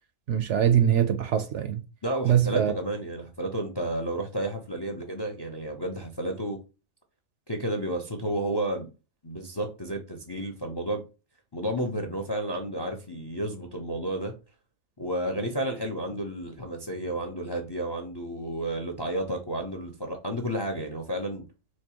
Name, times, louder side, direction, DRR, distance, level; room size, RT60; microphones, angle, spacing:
voice 1, 0.3-1.8 2.2-2.7, right 9 dB, 65° right, 0.8 m, -23 dB
voice 2, 2.0-6.6 7.5-8.9 9.2-11.0 11.5-14.4 15.0-21.5, right 1 dB, 30° left, 0.5 m, -31 dB
4.4 x 2.8 x 2.9 m
omnidirectional pair, 1.4 m